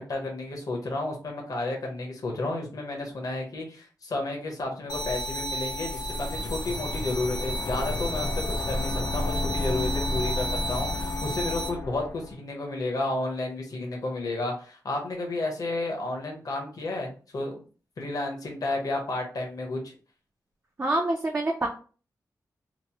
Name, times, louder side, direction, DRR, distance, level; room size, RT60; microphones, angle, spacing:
voice 1, 0.0-17.6 18.0-19.9, left 2 dB, 60° left, 1 dB, 0.9 m, -32 dB
sound 1, 4.9-11.7, right 1 dB, 90° left, 0.8 m, -33 dB
sound 2, 5.9-12.4, left 2 dB, 40° left, 0.4 m, -32 dB
voice 2, 20.8-21.7, right 2 dB, 35° right, 0 dB, 0.5 m, -26 dB
2.9 x 2.0 x 2.8 m, 0.37 s
wide cardioid pair, 100°, 7 cm